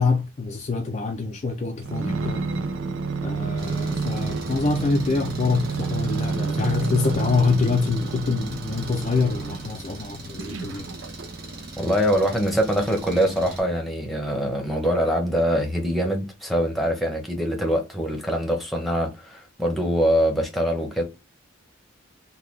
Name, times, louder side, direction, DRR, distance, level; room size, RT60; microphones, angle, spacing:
voice 1, 0.0-2.4 3.2-10.9, left 4 dB, 35° left, 0.3 m, -25 dB
sound 1, 1.8-9.8 10.4-11.7 12.3-12.4, right 4 dB, 75° right, 0.4 m, -29 dB
Engine, 3.6-13.6, right 2 dB, 55° right, 1.0 m, -40 dB
voice 2, 11.8-21.0, equal, ahead, 0.9 m, -23 dB
3.8 x 2.2 x 3.2 m
head